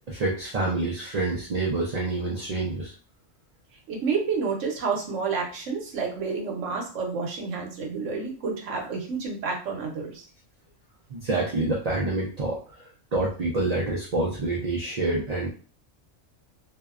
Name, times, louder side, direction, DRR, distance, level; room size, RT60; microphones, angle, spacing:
voice 1, 0.1-2.9 11.1-15.5, right 2 dB, 55° right, -4 dB, 0.4 m, -27 dB
voice 2, 3.9-10.2, right 5 dB, 75° right, 1 dB, 1.1 m, -29 dB
2.7 x 2.1 x 2.3 m, 0.39 s
omnidirectional pair, 1.3 m